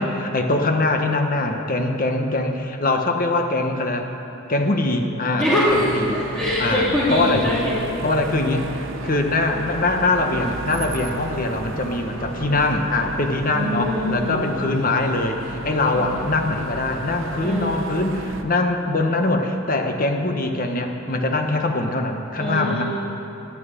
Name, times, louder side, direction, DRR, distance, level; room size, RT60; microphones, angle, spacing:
voice 1, 0.0-4.1 4.5-6.2 6.6-7.5 8.0-8.7 9.0-22.8, left 2 dB, 45° left, 4 dB, 1.3 m, -22 dB
voice 2, 5.4-7.8 13.5-14.5 15.9-16.2 17.4-17.8 22.4-22.8, left 1 dB, 10° left, -10 dB, 2.5 m, -23 dB
sound 1, 5.6-18.4, right 2 dB, 65° right, 1.0 m, -33 dB
11.5 x 10.5 x 9.1 m, 2.8 s
head